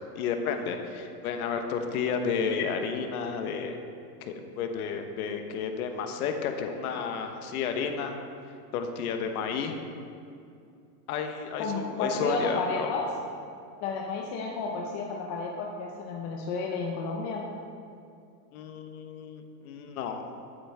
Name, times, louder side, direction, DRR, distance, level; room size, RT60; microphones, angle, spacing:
voice 1, 0.1-3.8 4.2-8.2 8.7-9.8 11.1-12.9 18.5-20.3, left 6 dB, 60° left, 5 dB, 1.2 m, -32 dB
voice 2, 11.6-13.0 13.8-17.4, left 4 dB, 25° left, 0 dB, 0.5 m, -32 dB
12.0 x 8.5 x 3.6 m, 2.5 s
supercardioid pair, 155°, 48 cm